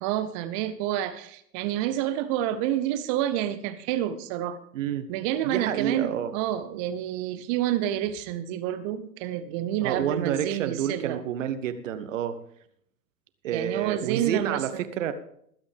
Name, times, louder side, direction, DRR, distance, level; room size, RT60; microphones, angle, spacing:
voice 1, 0.0-4.6 5.1-11.2 13.5-14.6, right 12 dB, 20° right, 13 dB, 0.6 m, -28 dB
voice 2, 4.7-5.1 5.4-6.3 9.8-12.4 13.4-15.1, right 9 dB, 50° right, 11 dB, 1.4 m, -29 dB
21.0 x 8.8 x 3.5 m, 0.68 s
figure-of-eight pair, 105°, 49 cm